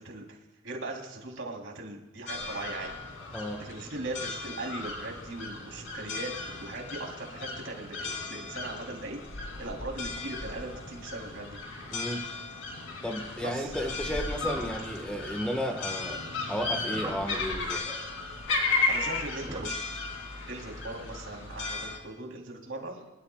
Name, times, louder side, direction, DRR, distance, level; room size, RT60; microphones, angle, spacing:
voice 1, 0.0-2.9 3.6-11.6 13.4-13.8 18.9-20.0 20.5-23.2, right 2 dB, 70° right, 0 dB, 3.2 m, -39 dB
sound 1, 2.3-22.0, left 3 dB, 80° left, 2.7 m, -35 dB
voice 2, 11.9-12.3 13.0-16.2 16.5-17.9, equal, 5° left, 3 dB, 1.4 m, -33 dB
sound 2, 14.4-17.6 18.7-19.8, right 1 dB, 25° right, 2.4 m, -43 dB
25.5 x 13.0 x 2.3 m, 1.1 s
head